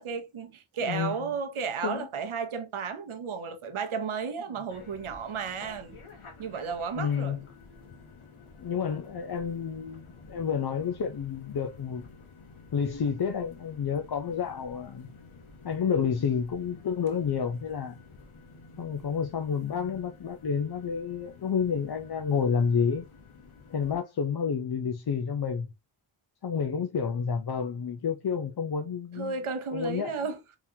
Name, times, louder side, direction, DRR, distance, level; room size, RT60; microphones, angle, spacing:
voice 1, 0.0-6.0 6.4-7.4 29.1-30.4, right 5 dB, 90° right, 0.7 m, -33 dB
voice 2, 0.8-1.2 1.8-2.1 7.0-7.4 8.6-12.1 12.7-15.1 15.6-18.0 18.8-23.1 23.7-25.7 26.4-29.3 29.7-30.2, left 6 dB, 50° left, 0.6 m, -30 dB
sound 1, 4.7-24.0, left 3 dB, 90° left, 0.9 m, -51 dB
3.6 x 3.0 x 2.7 m
wide cardioid pair, 60°, 48 cm